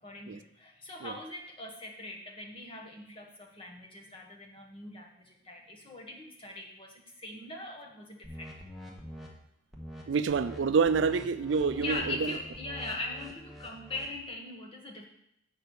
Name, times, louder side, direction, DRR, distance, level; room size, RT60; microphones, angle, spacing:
voice 1, 0.0-8.5 11.7-15.0, left 2 dB, 25° left, 0 dB, 1.4 m, -41 dB
sound 1, 8.2-9.3 9.7-10.0 10.3-10.6 10.8-14.1, equal, ahead, 1.2 m, -45 dB
voice 2, 10.1-12.3, right 5 dB, 65° right, 11 dB, 0.4 m, -27 dB
7.5 x 5.0 x 6.3 m, 0.77 s
head